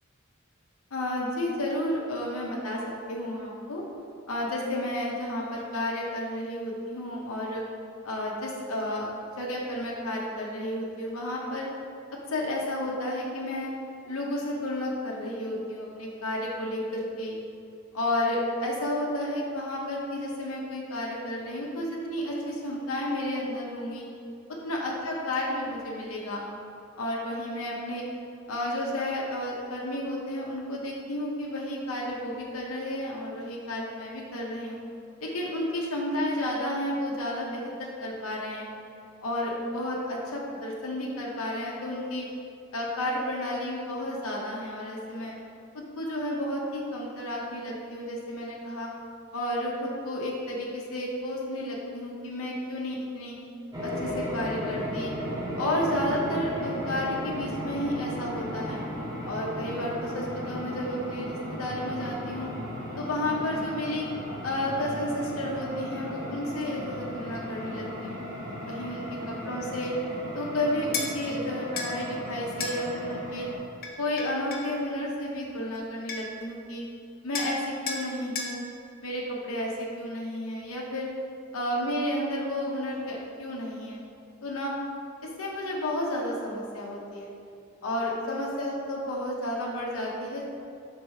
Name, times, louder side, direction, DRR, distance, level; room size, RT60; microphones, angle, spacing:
voice 1, 0.9-2.8 3.1-3.8 4.3-7.6 8.0-11.7 12.3-13.7 14.0-17.4 17.9-24.0 24.6-26.4 27.0-28.1 28.5-34.8 35.2-38.7 39.2-42.3 42.7-45.4 45.7-48.9 49.3-53.4 53.8-55.1 55.6-58.8 59.3-62.5 63.0-64.1 64.4-68.2 68.7-69.9 70.3-73.5 74.0-76.8 77.2-78.6 79.0-81.1 81.5-84.0 84.4-84.7 85.4-87.3 87.8-90.4, left 1 dB, 90° left, -3 dB, 0.9 m, -32 dB
sound 1, 53.7-73.6, equal, 20° right, 1.0 m, -36 dB
sound 2, 70.9-71.1 71.8-71.9 72.6-72.8 73.8-74.7 75.7-75.8 76.1-76.4 77.3-77.6 77.9-78.0 78.4-78.5, left 4 dB, 45° left, 0.7 m, -32 dB
4.7 x 3.9 x 5.5 m, 2.6 s
head